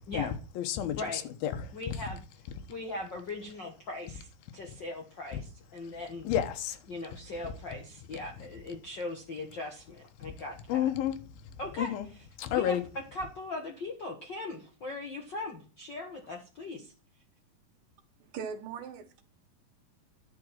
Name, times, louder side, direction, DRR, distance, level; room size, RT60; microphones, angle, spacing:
voice 1, 0.1-1.7 6.2-6.8 10.2-10.3 10.7-11.2 11.8-12.1 12.4-12.8, left 10 dB, 85° left, 3.0 m, -31 dB
voice 2, 1.7-2.2 2.7-6.3 6.9-10.9 11.6-11.9 12.5-12.8 13.1-16.9, left 2 dB, 50° left, 1.5 m, -39 dB
voice 3, 18.2-19.2, right 6 dB, 70° right, 3.0 m, -40 dB
11.0 x 5.0 x 7.3 m
omnidirectional pair, 4.2 m